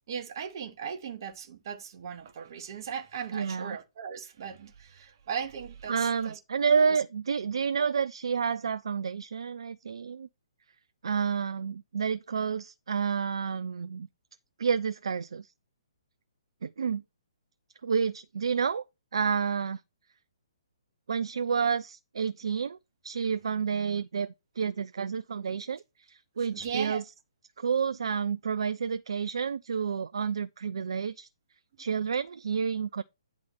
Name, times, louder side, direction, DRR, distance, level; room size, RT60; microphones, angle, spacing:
voice 1, 0.1-6.4 26.5-27.0, right 7 dB, 40° right, 1.3 m, -38 dB
voice 2, 3.3-3.8 5.9-10.3 11.0-14.1 14.6-15.5 16.6-17.0 17.8-18.8 19.1-19.8 21.1-22.8 23.0-27.1 27.6-31.3 31.8-33.0, right 6 dB, 60° right, 0.4 m, -29 dB
9.9 x 3.6 x 5.7 m
figure-of-eight pair, 130°, 3 cm